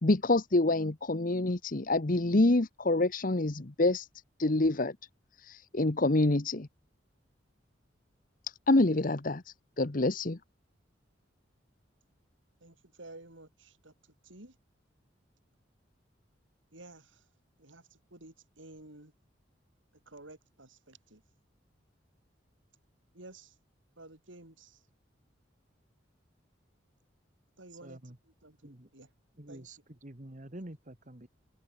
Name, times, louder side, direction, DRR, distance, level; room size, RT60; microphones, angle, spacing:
voice 1, 0.0-4.1 4.4-4.9 5.4-6.7 8.7-10.4, left 2 dB, 45° left, 1.1 m, -27 dB
voice 2, 12.6-13.9 14.2-14.6 16.7-17.2 17.6-19.1 20.0-21.2 23.1-23.5 24.0-24.8 27.6-29.1 29.5-29.7, right 2 dB, 85° right, 5.2 m, -52 dB
voice 3, 27.8-28.2 28.6-28.9 29.4-31.3, right 1 dB, 40° right, 1.9 m, -47 dB
head